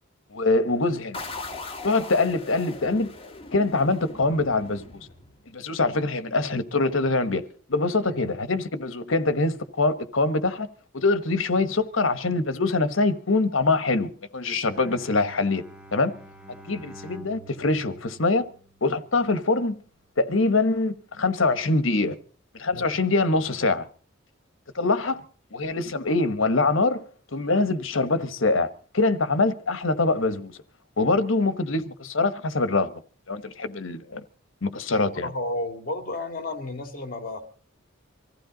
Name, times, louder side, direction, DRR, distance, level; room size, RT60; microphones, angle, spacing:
voice 1, 0.3-1.2 1.8-3.1 3.5-4.8 5.5-10.7 10.9-15.6 15.9-16.1 16.7-18.5 18.8-19.8 20.2-22.1 22.5-23.9 24.7-25.2 25.5-27.0 27.3-28.7 28.9-30.6 31.0-32.9 33.3-34.2 34.6-35.3, left 3 dB, 75° left, 1.2 m, -24 dB
sound 1, 1.1-5.7, left 3 dB, 30° left, 2.1 m, -40 dB
Bowed string instrument, 14.7-19.1, right 1 dB, 5° right, 1.2 m, -46 dB
voice 2, 34.9-37.4, left 2 dB, 45° left, 2.5 m, -32 dB
24.5 x 15.0 x 3.9 m
head